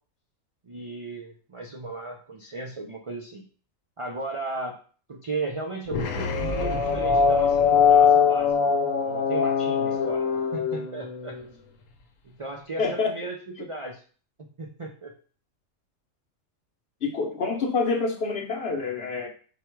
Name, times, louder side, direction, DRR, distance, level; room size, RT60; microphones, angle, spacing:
voice 1, 0.6-3.5 4.0-4.8 5.1-11.4 12.2-14.0 14.6-15.1, right 3 dB, 55° right, 1 dB, 0.3 m, -36 dB
sound 1, 5.9-11.4, left 6 dB, 75° left, 1.0 m, -22 dB
voice 2, 12.8-13.1 17.0-19.3, left 4 dB, 55° left, 3 dB, 1.0 m, -27 dB
5.1 x 2.3 x 4.4 m, 0.41 s
omnidirectional pair, 1.4 m